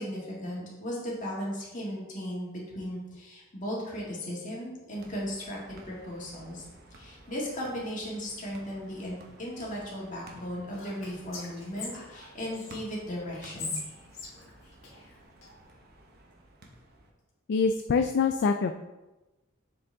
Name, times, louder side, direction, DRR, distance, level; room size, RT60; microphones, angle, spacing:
voice 1, 0.0-6.6 6.9-13.8, equal, 40° left, -4 dB, 2.1 m, -36 dB
sound 1, 4.9-17.1, right 1 dB, 50° right, 1.0 m, -54 dB
Whispering, 10.7-12.7 13.3-15.5, left 4 dB, 80° left, 2.0 m, -41 dB
voice 2, 17.5-18.7, left 5 dB, 55° left, 6 dB, 0.3 m, -25 dB
7.2 x 5.0 x 3.5 m, 1.1 s
head